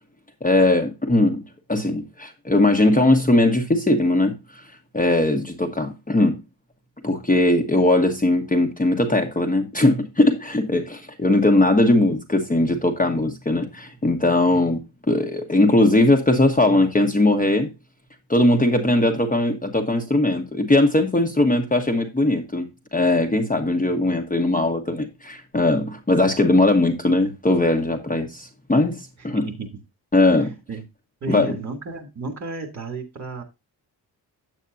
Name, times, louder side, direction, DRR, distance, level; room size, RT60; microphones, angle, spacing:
voice 1, 0.4-1.4 1.7-4.3 4.9-6.4 7.0-14.8 15.1-17.7 18.3-29.5 30.1-30.5 31.3-31.5, left 2 dB, 20° left, 1.2 m, -19 dB
voice 2, 29.3-29.7 30.3-30.8 31.2-33.4, right 4 dB, 40° right, 3.0 m, -33 dB
9.1 x 8.2 x 2.7 m
wide cardioid pair, 140°, 42 cm